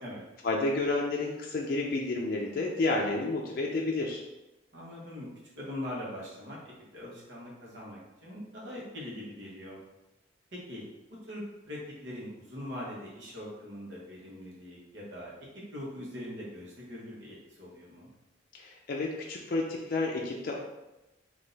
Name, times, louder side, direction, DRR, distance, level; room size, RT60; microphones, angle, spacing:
voice 1, 0.4-4.2 18.5-20.5, left 2 dB, 50° left, -2 dB, 0.4 m, -30 dB
voice 2, 4.7-5.3 5.6-6.6 6.9-9.8 10.7-10.9 11.3-18.1, left 1 dB, 70° right, -5 dB, 1.4 m, -42 dB
3.7 x 2.8 x 4.0 m, 0.99 s
head